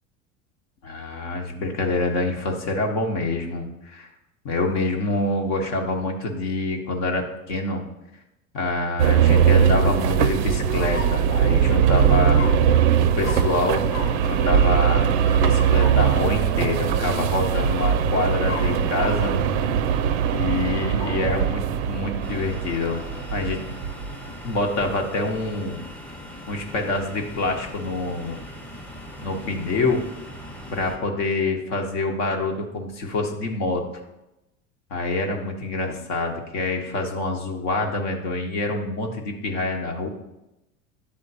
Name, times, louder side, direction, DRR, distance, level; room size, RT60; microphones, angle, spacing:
voice 1, 0.8-4.1 4.4-7.8 8.5-12.4 13.0-19.4 20.3-23.0 23.3-23.6 24.4-25.8 26.5-28.4 29.2-30.0 30.7-33.8 34.9-40.1, left 2 dB, 50° left, 2 dB, 1.0 m, -26 dB
sound 1, 9.0-24.1, right 8 dB, 55° right, 0.5 m, -21 dB
sound 2, 10.8-11.6 12.3-12.9 13.2-13.5 13.9-14.2 15.2-16.4 18.4-19.3 20.8-21.5, left 3 dB, 80° left, 1.1 m, -35 dB
sound 3, 22.2-31.0, equal, 5° left, 0.8 m, -40 dB
9.6 x 3.6 x 2.7 m, 0.93 s
figure-of-eight pair, 80°, 41 cm